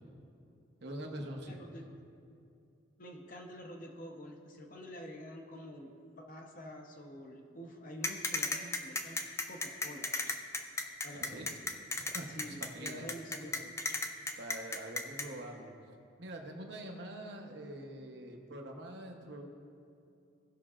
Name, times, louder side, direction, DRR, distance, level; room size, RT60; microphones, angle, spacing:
voice 1, 0.8-1.6 11.1-11.6 12.0-13.0 14.4-15.7 16.2-19.5, right 1 dB, 55° right, 2 dB, 0.9 m, -44 dB
voice 2, 1.5-1.9 3.0-9.2 9.5-10.1 11.0-11.6 12.3-13.7, equal, 40° left, 2 dB, 0.8 m, -48 dB
sound 1, 8.0-15.3, left 3 dB, 15° left, 0.3 m, -34 dB
16.0 x 5.9 x 2.4 m, 2.6 s
head